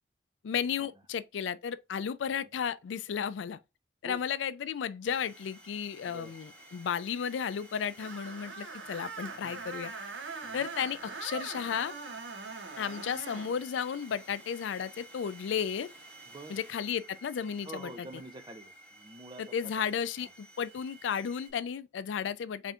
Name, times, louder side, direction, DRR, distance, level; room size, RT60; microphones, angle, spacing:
voice 1, 0.4-3.6 4.0-9.9 10.5-11.9 12.8-15.9 16.5-18.1 19.4-22.7, left 7 dB, 85° left, 0.4 m, -34 dB
sound 1, 5.0-21.5, right 2 dB, 5° left, 2.0 m, -53 dB
Screech, 8.0-13.5, right 4 dB, 85° right, 1.0 m, -42 dB
voice 2, 9.4-9.7 10.4-10.7 13.1-13.2 16.3-16.6 17.6-19.7 20.2-20.3, right 1 dB, 25° right, 0.5 m, -47 dB
4.2 x 3.4 x 2.4 m
head